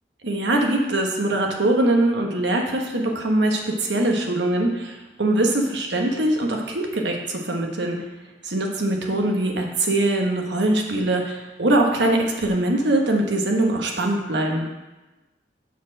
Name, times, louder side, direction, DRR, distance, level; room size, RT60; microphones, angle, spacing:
voice 1, 0.2-8.0 8.4-14.7, right 1 dB, 90° right, 1 dB, 1.2 m, -22 dB
7.1 x 4.3 x 6.3 m, 1.1 s
head